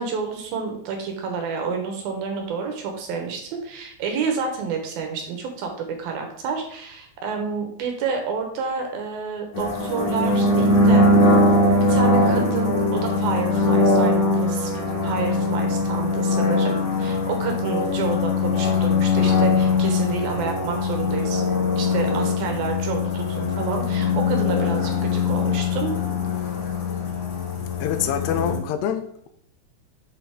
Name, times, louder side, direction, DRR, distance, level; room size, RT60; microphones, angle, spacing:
voice 1, 0.0-11.1 11.9-14.7 15.0-21.4 21.8-25.9, right 5 dB, 70° right, 3 dB, 2.7 m, -29 dB
sound 1, 9.5-28.6, left 2 dB, 50° left, 2.4 m, -21 dB
voice 2, 27.8-29.3, left 8 dB, 85° left, 8 dB, 2.7 m, -26 dB
7.4 x 5.8 x 3.6 m, 0.70 s
omnidirectional pair, 4.8 m